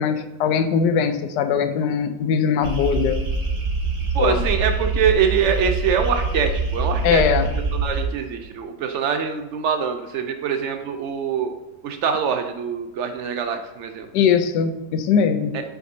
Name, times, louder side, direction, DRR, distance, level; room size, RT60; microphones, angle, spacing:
voice 1, 0.0-3.3 4.2-4.4 7.0-7.5 14.1-15.6, left 7 dB, 85° left, 9 dB, 1.2 m, -21 dB
sound 1, 2.6-8.1, right 3 dB, 70° right, 1.8 m, -24 dB
voice 2, 4.1-7.2 7.7-11.5 11.8-14.1 15.5-15.6, right 7 dB, 90° right, 6 dB, 0.6 m, -24 dB
7.9 x 4.9 x 2.7 m, 1.0 s
omnidirectional pair, 1.8 m